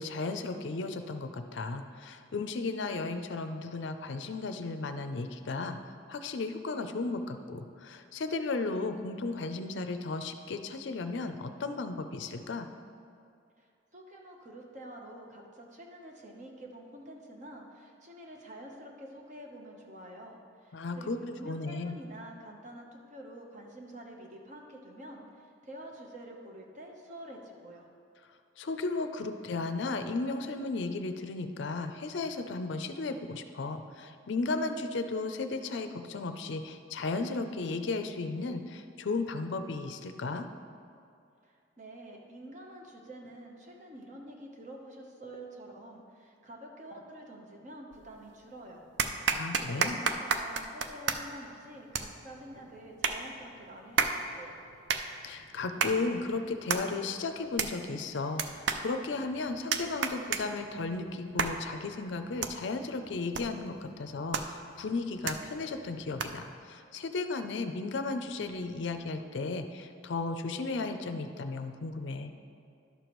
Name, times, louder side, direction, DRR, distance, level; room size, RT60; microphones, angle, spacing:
voice 1, 0.0-12.7 20.7-21.2 21.4-22.0 28.6-40.5 49.3-50.0 55.2-72.3, left 3 dB, 65° left, 8 dB, 0.5 m, -35 dB
voice 2, 13.6-27.9 41.4-48.8 49.3-54.6, right 1 dB, 35° right, 0 dB, 0.9 m, -48 dB
sound 1, 47.9-48.5 49.0-66.6, right 5 dB, 60° right, 0.4 m, -35 dB
11.5 x 6.8 x 3.1 m, 2.5 s
head